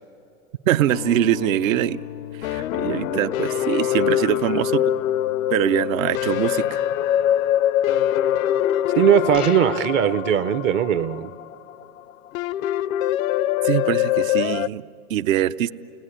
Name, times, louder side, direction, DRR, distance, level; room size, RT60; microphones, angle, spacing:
voice 1, 0.7-2.0 2.4-4.8 5.5-6.8 13.6-15.7, right 12 dB, 65° right, 14 dB, 0.8 m, -23 dB
sound 1, 0.9-14.7, left 12 dB, 65° left, 0.6 m, -24 dB
voice 2, 2.8-3.2 9.0-11.3, right 9 dB, 25° right, 13 dB, 0.5 m, -20 dB
sound 2, 9.3-10.1, left 8 dB, 90° left, 1.1 m, -37 dB
30.0 x 18.5 x 9.9 m, 2.6 s
hypercardioid pair, 115°, 44 cm